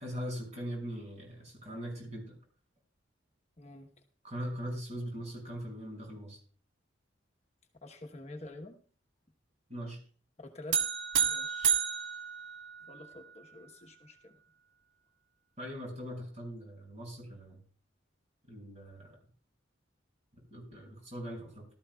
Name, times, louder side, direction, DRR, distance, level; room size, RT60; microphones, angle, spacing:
voice 1, 0.0-2.3 4.2-6.4 9.7-10.0 15.6-17.6 18.5-19.2 20.5-21.7, equal, 35° right, 0 dB, 6.0 m, -41 dB
voice 2, 3.6-3.9 7.8-8.8 10.4-10.8 11.2-11.8 12.9-14.4, left 1 dB, 35° left, 4 dB, 1.1 m, -48 dB
sound 1, 10.7-13.2, right 8 dB, 70° right, 1.3 m, -30 dB
18.5 x 13.0 x 2.3 m, 0.43 s
head